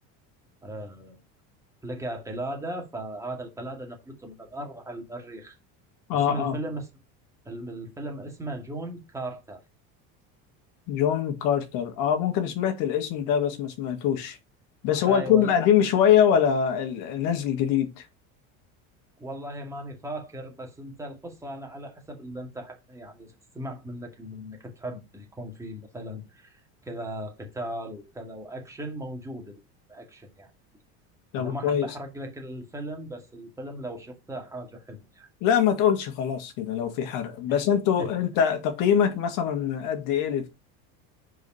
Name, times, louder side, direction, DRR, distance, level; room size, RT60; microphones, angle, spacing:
voice 1, 0.6-1.2 1.8-5.6 6.1-6.9 7.5-9.6 14.9-15.6 19.2-29.6 29.9-30.5 31.4-35.3 38.0-38.1, right 1 dB, 10° right, 2.2 m, -37 dB
voice 2, 6.1-6.5 10.9-14.4 14.8-18.1 31.3-31.9 35.4-40.5, left 9 dB, 65° left, 1.9 m, -23 dB
5.2 x 4.7 x 5.5 m
cardioid pair, 145°, 35 cm